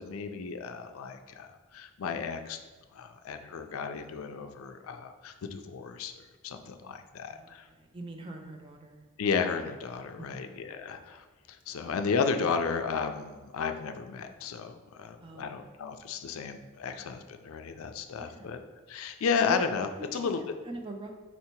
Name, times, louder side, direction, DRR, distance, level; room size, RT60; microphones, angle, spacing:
voice 1, 0.0-1.5 1.7-2.6 3.0-6.1 6.4-7.6 9.2-11.2 11.7-18.6 18.9-20.4, left 5 dB, 80° left, 7 dB, 0.4 m, -33 dB
voice 2, 7.3-9.1 10.2-10.7 15.2-15.6 18.2-18.5 19.4-19.6 20.0-20.3 20.6-21.1, right 2 dB, 25° right, 3 dB, 0.4 m, -42 dB
4.3 x 2.8 x 4.4 m, 1.3 s
head